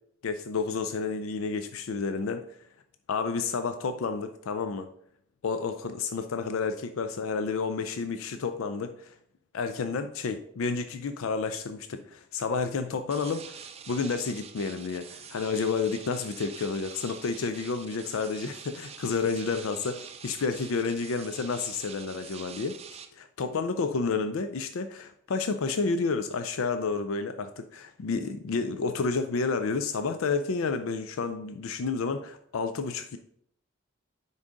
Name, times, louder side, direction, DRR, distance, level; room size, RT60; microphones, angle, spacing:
voice 1, 0.2-2.4 3.1-4.9 5.4-9.1 9.5-13.6 13.9-22.8 23.1-33.2, left 4 dB, 85° left, 9 dB, 0.4 m, -30 dB
sound 1, 13.1-23.1, right 7 dB, 30° right, 0.4 m, -46 dB
9.6 x 3.9 x 3.8 m, 0.69 s
head